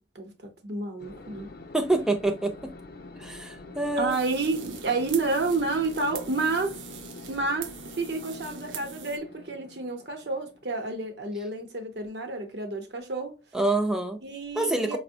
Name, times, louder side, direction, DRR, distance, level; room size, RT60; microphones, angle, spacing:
voice 1, 0.1-1.5 4.0-6.8 7.3-13.4 14.2-15.0, right 3 dB, 65° right, 0.8 m, -30 dB
sound 1, 1.0-12.1, left 2 dB, 55° left, 0.6 m, -46 dB
voice 2, 1.7-2.7 3.2-4.2 13.5-14.2 14.6-15.0, right 2 dB, 5° right, 0.4 m, -26 dB
sound 2, 4.1-9.2, right 7 dB, 90° right, 0.4 m, -43 dB
5.0 x 2.1 x 2.6 m
head